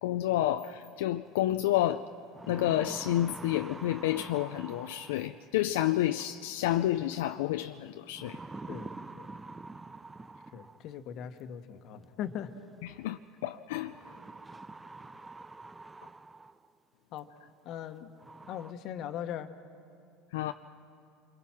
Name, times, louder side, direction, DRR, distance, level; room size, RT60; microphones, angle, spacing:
voice 1, 0.0-2.1 2.5-8.4 12.8-13.9 20.3-20.5, left 13 dB, 80° left, 0.5 m, -30 dB
sound 1, 1.6-1.7 2.1-5.5 6.9-7.4 8.1-10.9 12.2-12.3 13.8-16.7 17.2-17.3 17.8-17.9 18.2-18.7, right 3 dB, 15° right, 0.7 m, -46 dB
voice 2, 10.5-12.5 17.1-17.3 17.6-18.1 18.5-19.5, left 10 dB, 55° left, 1.3 m, -39 dB
28.0 x 22.0 x 5.9 m
hypercardioid pair, 85°, 0 cm